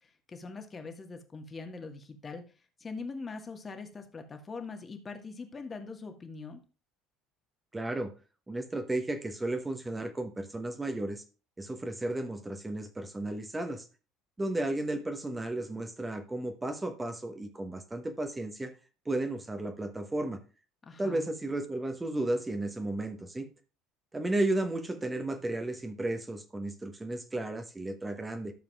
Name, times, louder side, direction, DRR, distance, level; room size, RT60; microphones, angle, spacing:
voice 1, 0.0-2.4 2.8-6.6 20.8-21.2, left 4 dB, 30° left, 5 dB, 1.5 m, -42 dB
voice 2, 7.7-8.1 8.5-11.2 11.6-13.8 14.4-18.7 19.0-20.4 21.0-23.4 24.1-28.5, right 2 dB, 15° right, 6 dB, 1.2 m, -33 dB
13.0 x 6.8 x 2.4 m, 0.35 s
figure-of-eight pair, 60°, 0 cm